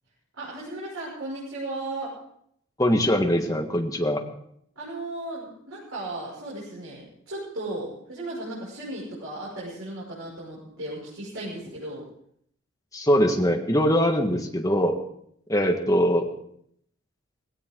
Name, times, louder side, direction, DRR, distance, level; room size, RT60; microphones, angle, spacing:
voice 1, 0.4-2.2 4.7-12.0, right 2 dB, 85° right, -7 dB, 6.5 m, -35 dB
voice 2, 2.8-4.2 12.9-15.0 15.5-16.3, equal, 15° left, 3 dB, 1.6 m, -22 dB
18.0 x 17.0 x 3.9 m, 0.69 s
head